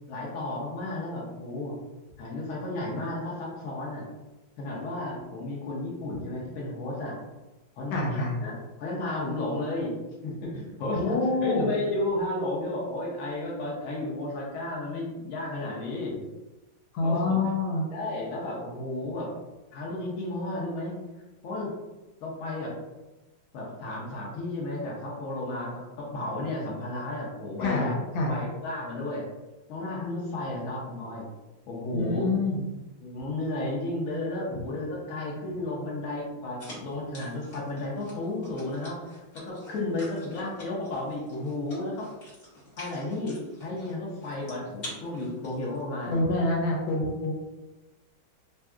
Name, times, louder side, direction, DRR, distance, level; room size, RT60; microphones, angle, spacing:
voice 1, 0.1-1.7 2.2-4.1 4.6-7.2 7.8-8.5 8.8-9.9 10.2-16.2 17.0-17.4 17.9-19.3 19.7-20.9 21.4-21.7 22.2-22.7 23.5-28.0 28.3-29.2 29.7-31.3 31.7-32.3 33.0-42.1 42.8-46.2, left 2 dB, 55° left, -4 dB, 0.9 m, -33 dB
voice 2, 7.9-8.3 10.9-11.7 16.9-17.9 27.6-27.9 28.1-28.4 31.9-32.6 46.0-47.3, left 2 dB, 80° left, -1 dB, 1.5 m, -26 dB
sound 1, 36.6-46.1, left 1 dB, 35° left, 0.7 m, -47 dB
3.3 x 2.7 x 2.3 m, 1.1 s
omnidirectional pair, 2.1 m